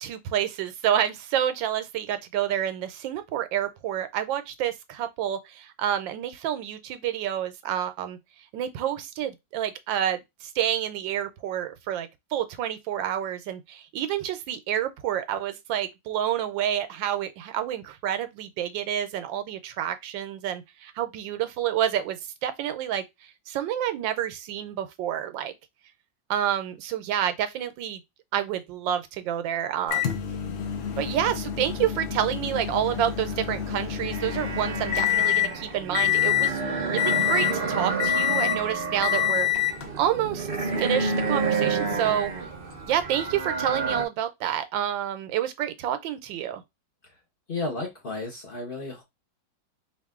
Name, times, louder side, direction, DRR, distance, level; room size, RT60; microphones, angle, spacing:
voice 1, 0.0-8.2 8.5-23.0 23.5-25.5 26.3-28.0 28.3-30.2 31.0-39.5 40.0-42.3 42.9-46.6, right 10 dB, 90° right, 1.4 m, -29 dB
Microwave oven, 29.9-35.5 35.9-36.6 37.0-37.6 38.0-38.6 39.0-39.8 40.8-40.9 42.9-43.0, left 13 dB, 80° left, 0.5 m, -26 dB
sound 1, 32.9-44.1, right 4 dB, 45° right, 0.7 m, -30 dB
voice 2, 47.5-49.0, left 2 dB, 40° left, 0.8 m, -33 dB
4.3 x 2.6 x 3.6 m
omnidirectional pair, 2.0 m